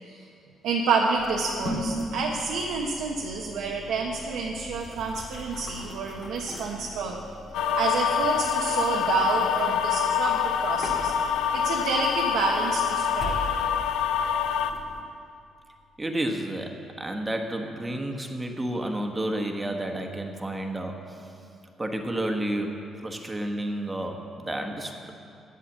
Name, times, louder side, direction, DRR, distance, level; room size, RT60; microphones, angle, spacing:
voice 1, 0.6-7.2 7.7-11.1 11.5-13.4, right 4 dB, 90° right, 0 dB, 1.0 m, -28 dB
sound 1, 1.2-15.0, left 1 dB, 60° left, 2.2 m, -40 dB
sound 2, 7.5-14.7, left 8 dB, 90° left, 0.5 m, -26 dB
voice 2, 16.0-21.3 21.8-22.8 23.0-25.1, right 1 dB, 15° right, 3 dB, 1.3 m, -31 dB
10.0 x 8.5 x 7.4 m, 2.5 s
cardioid pair, 90°, 0 cm